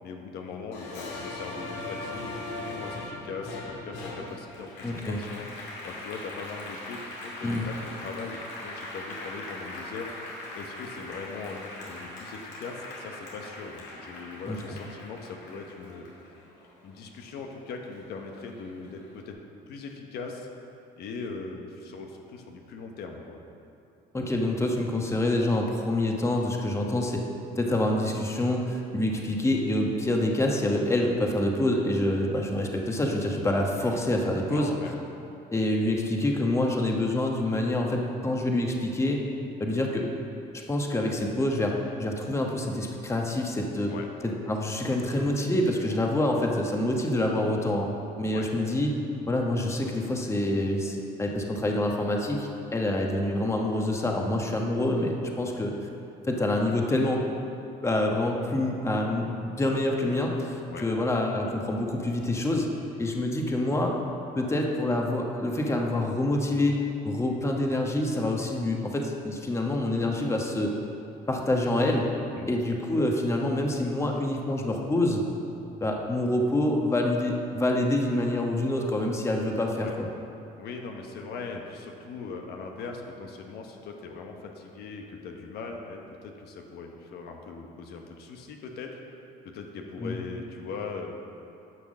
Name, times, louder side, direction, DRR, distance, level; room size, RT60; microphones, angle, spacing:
voice 1, 0.0-10.1 10.5-16.1 16.8-19.4 19.7-20.5 21.0-23.4 33.7-34.0 34.5-34.9 43.9-44.1 48.3-48.5 60.7-60.9 72.4-72.5 79.8-79.9 80.6-89.0 89.4-91.1, left 4 dB, 75° left, 2 dB, 1.1 m, -40 dB
Applause, 0.7-17.5 17.9-19.1, left 2 dB, 90° left, 2.4 m, -40 dB
voice 2, 4.8-5.2 7.4-7.6 14.5-14.8 24.1-27.2 27.5-34.7 35.5-39.2 39.6-40.0 40.7-43.9 44.5-47.9 48.2-49.0 49.3-55.7 56.3-57.2 57.8-62.7 63.0-64.0 64.3-70.7 71.3-72.1 72.5-75.2 75.8-80.1 90.0-90.2, left 1 dB, 15° left, 1 dB, 1.2 m, -26 dB
11.0 x 6.0 x 6.4 m, 2.7 s
cardioid pair, 110°, 17 cm